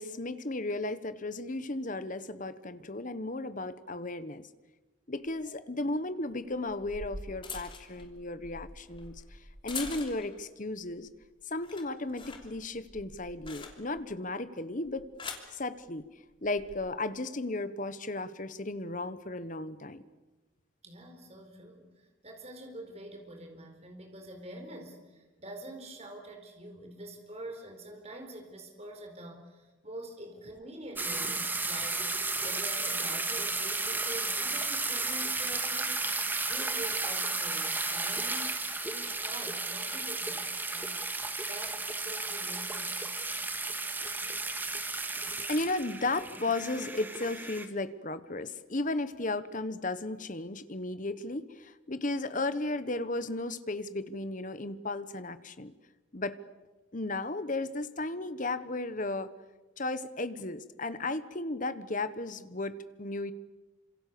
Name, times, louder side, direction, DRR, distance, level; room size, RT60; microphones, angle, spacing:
voice 1, 0.0-4.5 5.1-11.1 11.5-15.1 15.5-16.1 16.4-20.0 44.9-55.7 56.1-56.4 56.9-59.3 59.8-63.3, left 2 dB, 40° left, 13 dB, 1.3 m, -35 dB
sound 1, 5.2-5.3 6.5-10.5 10.9-11.2 11.5-14.1 14.8-15.5 16.4-16.7, left 4 dB, 25° left, 3.1 m, -44 dB
voice 2, 20.8-32.1 32.4-36.1 36.5-41.0 41.5-43.1, right 1 dB, 30° right, 4 dB, 4.5 m, -46 dB
sound 2, 31.0-47.7, right 3 dB, 10° right, 1.7 m, -33 dB
28.5 x 26.5 x 7.0 m, 1.2 s
head